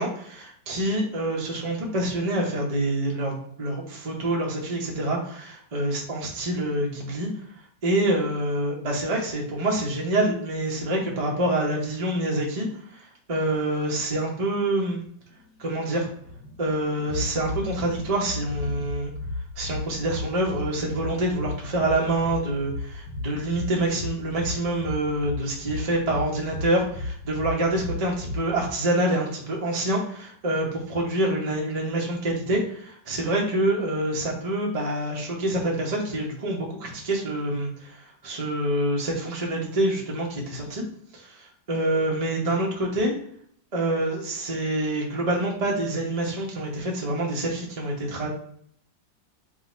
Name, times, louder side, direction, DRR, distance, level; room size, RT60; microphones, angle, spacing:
voice 1, 0.0-7.3 7.8-12.7 12.9-15.0 15.6-16.1 16.6-19.1 19.6-40.8 41.1-43.1 43.7-48.3, right 1 dB, 30° right, -2 dB, 0.6 m, -26 dB
sound 1, 16.1-28.7, left 2 dB, 75° left, 1.2 m, -35 dB
3.7 x 2.7 x 4.2 m, 0.62 s
omnidirectional pair, 2.0 m